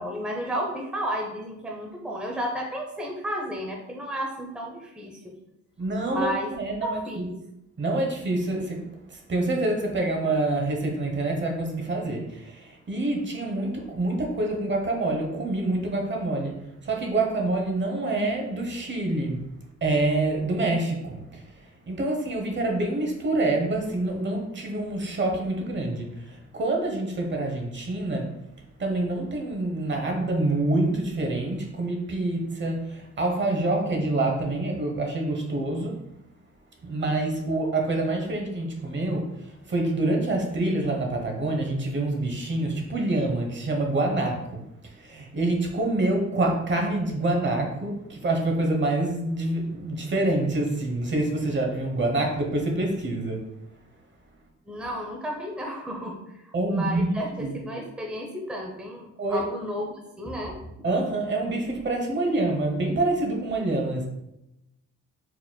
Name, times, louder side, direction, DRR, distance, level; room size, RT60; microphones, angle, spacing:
voice 1, 0.0-5.3 6.0-6.5 6.8-7.3 54.7-60.6, equal, 5° right, 0 dB, 0.7 m, -33 dB
voice 2, 5.8-7.3 7.8-8.8 9.1-16.6 16.8-19.4 19.8-21.4 21.9-28.3 28.8-35.9 36.8-53.4 56.5-57.1 57.4-57.5 59.2-59.4 60.8-64.0, right 2 dB, 40° right, 2 dB, 1.0 m, -26 dB
4.2 x 4.1 x 2.2 m, 0.86 s
cardioid pair, 90°, 30 cm